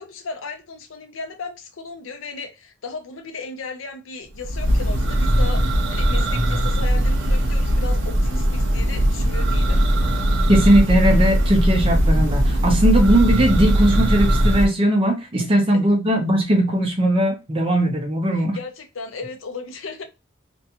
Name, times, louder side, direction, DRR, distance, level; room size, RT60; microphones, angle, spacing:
voice 1, 0.0-9.9 15.4-15.5 18.4-20.0, left 4 dB, 85° left, 0.6 m, -35 dB
Church bell, 4.4-14.7, equal, 70° right, 0.7 m, -19 dB
voice 2, 10.5-18.6, right 1 dB, 25° right, 0.6 m, -19 dB
2.5 x 2.2 x 2.8 m
head